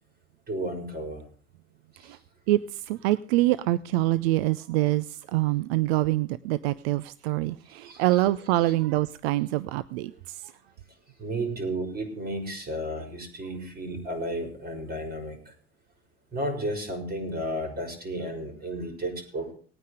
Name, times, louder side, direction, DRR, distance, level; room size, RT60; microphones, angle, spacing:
voice 1, 0.5-1.2 2.0-2.2 7.8-8.2 11.2-15.5 16.3-19.5, right 1 dB, 30° right, 4 dB, 6.3 m, -33 dB
voice 2, 2.5-10.5, right 16 dB, 65° right, 17 dB, 0.7 m, -25 dB
19.0 x 9.4 x 4.9 m, 0.42 s
hypercardioid pair, 80°, 33 cm